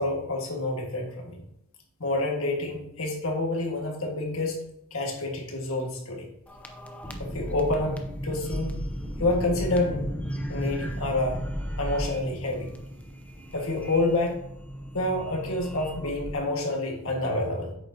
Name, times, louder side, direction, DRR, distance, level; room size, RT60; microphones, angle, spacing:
voice 1, 0.0-1.4 2.0-4.6 4.9-6.3 7.2-8.8 9.2-10.1 10.5-11.5 11.8-12.7 13.5-14.4 14.9-17.7, left 2 dB, 70° left, 0 dB, 1.8 m, -28 dB
sound 1, 6.5-16.3, equal, 5° left, 0.6 m, -35 dB
8.7 x 6.6 x 2.8 m, 0.77 s
head